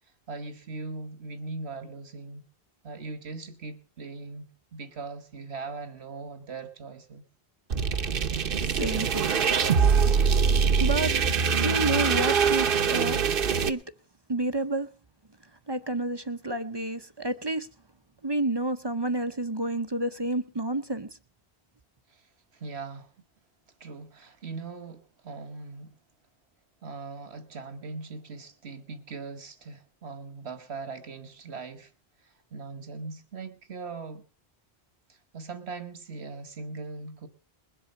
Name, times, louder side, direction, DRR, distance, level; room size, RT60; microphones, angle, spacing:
voice 1, 0.3-2.4 2.8-7.2 22.1-22.3 22.5-23.1 23.8-25.9 26.8-31.9 32.2-34.2 35.1-37.3, right 4 dB, 90° right, 1.7 m, -40 dB
sound 1, 7.7-13.7, right 6 dB, 60° right, 1.0 m, -23 dB
voice 2, 8.6-9.5 10.8-11.1 11.6-13.2 13.6-13.8 14.3-14.9 15.7-17.7 18.2-21.1, right 2 dB, 30° right, 0.6 m, -29 dB
21.0 x 7.8 x 5.4 m
omnidirectional pair, 1.1 m